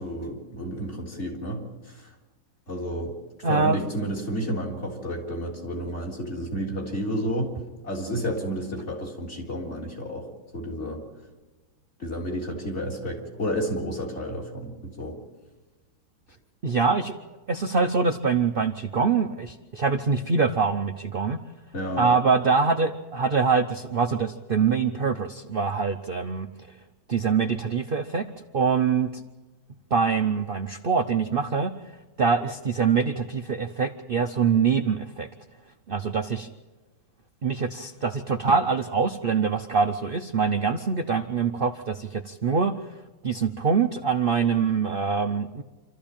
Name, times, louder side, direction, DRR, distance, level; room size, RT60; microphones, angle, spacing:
voice 1, 0.0-1.6 1.9-2.1 2.7-3.1 3.5-7.5 7.8-10.3 10.5-11.0 12.0-15.1 21.7-22.1, equal, 35° left, 2 dB, 4.0 m, -31 dB
voice 2, 3.4-3.8 16.6-17.2 17.5-21.4 22.0-26.5 27.1-28.3 28.5-29.1 29.9-31.7 32.2-35.3 35.9-36.5 37.4-42.8 43.2-45.6, right 5 dB, 65° right, 6 dB, 0.5 m, -24 dB
27.0 x 13.5 x 8.8 m, 1.2 s
omnidirectional pair, 2.1 m